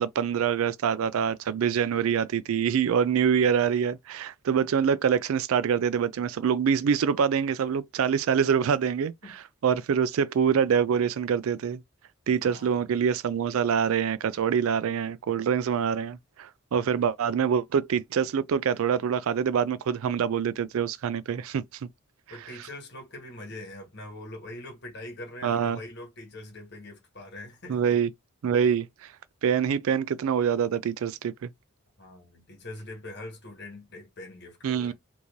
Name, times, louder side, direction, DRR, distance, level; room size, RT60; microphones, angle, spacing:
voice 1, 0.0-9.1 9.6-11.8 12.3-21.6 25.4-25.8 27.7-28.1 28.4-29.1 29.4-31.5 34.6-34.9, right 7 dB, 75° right, 0.3 m, -25 dB
voice 2, 12.4-12.9 16.7-16.9 22.3-28.0 32.0-34.9, left 1 dB, 50° left, 1.5 m, -43 dB
3.0 x 2.7 x 3.6 m
head